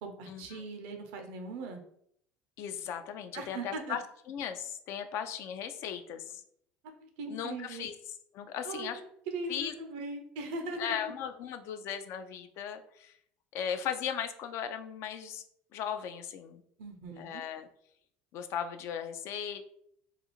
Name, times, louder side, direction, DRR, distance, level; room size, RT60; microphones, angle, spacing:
voice 1, 0.0-1.8 3.3-4.0 6.8-7.9 8.6-8.9 9.3-11.0 16.8-17.4, right 3 dB, 80° right, 5 dB, 0.5 m, -40 dB
voice 2, 2.6-4.0 4.3-6.4 7.3-7.9 8.3-9.0 9.5-9.7 10.8-13.2 13.5-15.4 15.7-16.6 17.2-17.7 18.3-19.6, left 8 dB, 60° left, 9 dB, 0.3 m, -37 dB
2.4 x 2.3 x 2.9 m, 0.68 s
supercardioid pair, 90°, 5 cm